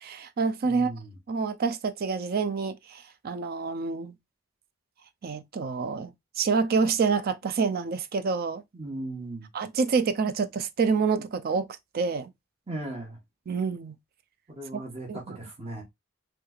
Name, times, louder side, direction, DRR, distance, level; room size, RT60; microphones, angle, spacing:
voice 1, 0.0-0.9 1.3-4.1 5.2-8.6 9.5-11.7 11.9-12.3 13.5-14.0 15.1-15.4, right 5 dB, 45° right, 0.4 m, -27 dB
voice 2, 0.6-1.1 8.7-9.5 12.7-13.2 14.5-15.8, right 2 dB, 30° right, 1.0 m, -37 dB
3.1 x 3.1 x 2.3 m
head